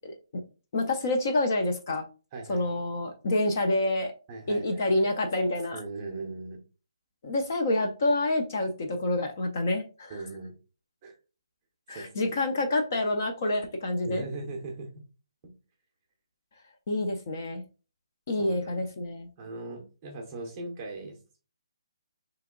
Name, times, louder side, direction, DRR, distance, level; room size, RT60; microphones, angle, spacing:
voice 1, 0.7-2.1 2.5-4.1 4.5-5.8 7.2-10.1 11.9-14.2 16.9-17.6 18.3-19.3, left 2 dB, 30° left, 4 dB, 0.4 m, -27 dB
voice 2, 2.3-2.7 4.3-5.1 5.7-6.6 10.1-10.5 11.0-11.2 11.9-12.3 14.0-14.9 15.4-15.5 18.4-18.8 19.4-21.4, right 2 dB, 15° right, 1 dB, 0.6 m, -39 dB
3.4 x 2.9 x 3.6 m, 0.34 s
hypercardioid pair, 175°, 3 cm